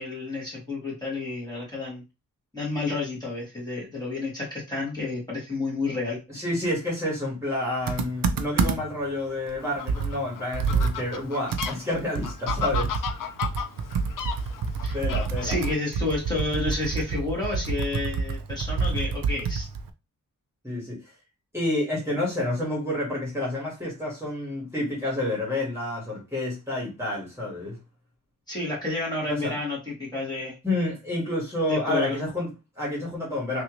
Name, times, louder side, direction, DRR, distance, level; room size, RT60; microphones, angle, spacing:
voice 1, 0.0-2.0 2.5-6.2 14.8-15.0 15.4-19.7 28.5-30.5 31.7-32.2, left 3 dB, 10° left, 1.7 m, -30 dB
voice 2, 6.3-13.0 14.9-15.6 20.6-21.0 21.5-27.8 29.3-29.6 30.6-33.6, left 1 dB, 10° right, 1.6 m, -29 dB
Computer keyboard, 7.9-9.0 9.5-9.6 9.9-13.2 13.4-19.9, right 4 dB, 85° right, 0.5 m, -28 dB
Fowl, 9.6-15.7, left 7 dB, 70° left, 0.5 m, -35 dB
3.2 x 2.6 x 3.0 m
wide cardioid pair, 135°, 33 cm